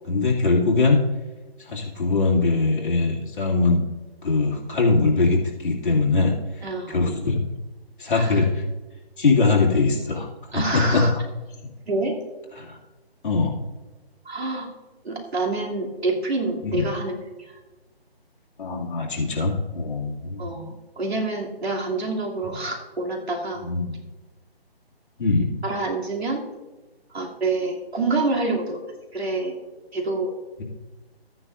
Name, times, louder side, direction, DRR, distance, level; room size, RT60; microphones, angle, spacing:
voice 1, 0.1-1.0 1.7-3.8 4.2-6.4 6.9-7.4 8.0-8.6 9.2-10.3 10.5-11.1 12.6-12.8 13.2-13.6 16.6-16.9 18.6-20.5 23.6-23.9 25.2-25.5, left 3 dB, 55° left, -3 dB, 2.5 m, -21 dB
voice 2, 6.6-7.0 8.1-8.4 10.5-11.1 11.9-12.2 14.2-14.7 15.0-17.2 20.4-23.6 25.6-26.4 27.1-28.8 29.1-29.6 29.9-30.3, right 3 dB, 80° right, -2 dB, 2.8 m, -27 dB
14.0 x 9.7 x 2.5 m, 1.2 s
figure-of-eight pair, 160°, 32 cm